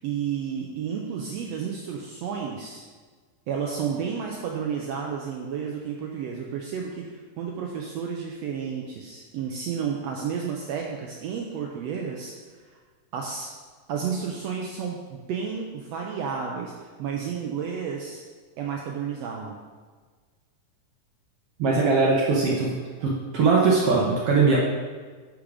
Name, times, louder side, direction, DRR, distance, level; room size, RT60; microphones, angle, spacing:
voice 1, 0.0-2.8 3.5-12.3 12.7-12.8 13.1-13.5 13.9-18.2 18.6-19.6, right 7 dB, 85° right, -1 dB, 1.4 m, -31 dB
voice 2, 21.6-24.6, right 4 dB, 70° right, -3 dB, 1.5 m, -21 dB
10.0 x 3.8 x 4.9 m, 1.5 s
omnidirectional pair, 3.7 m